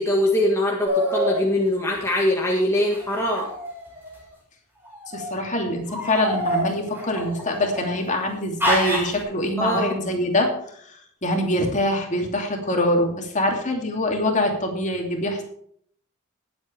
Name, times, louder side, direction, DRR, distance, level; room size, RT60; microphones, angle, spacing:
voice 1, 0.0-3.5 9.6-10.0, left 1 dB, 10° left, -2 dB, 1.7 m, -22 dB
sound 1, 0.8-1.4 2.9-4.1 4.9-5.3 5.9-8.0 8.6-9.2, equal, 10° right, 4.9 m, -26 dB
voice 2, 5.1-10.5 11.2-15.4, left 1 dB, 35° left, 2 dB, 2.7 m, -24 dB
20.0 x 8.0 x 3.4 m, 0.65 s
head